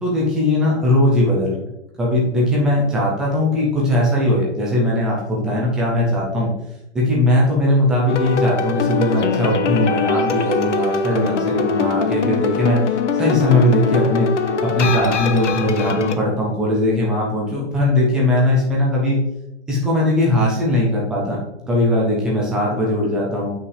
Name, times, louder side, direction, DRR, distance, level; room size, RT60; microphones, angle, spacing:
voice 1, 0.0-1.7 2.0-6.5 6.9-12.8 13.2-14.3 14.6-19.2 19.7-21.4 21.7-23.5, left 1 dB, ahead, -4 dB, 0.3 m, -19 dB
sound 1, 8.1-16.2, left 5 dB, 80° left, 1.0 m, -22 dB
9.3 x 5.7 x 3.2 m, 0.91 s
hypercardioid pair, 140°, 35 cm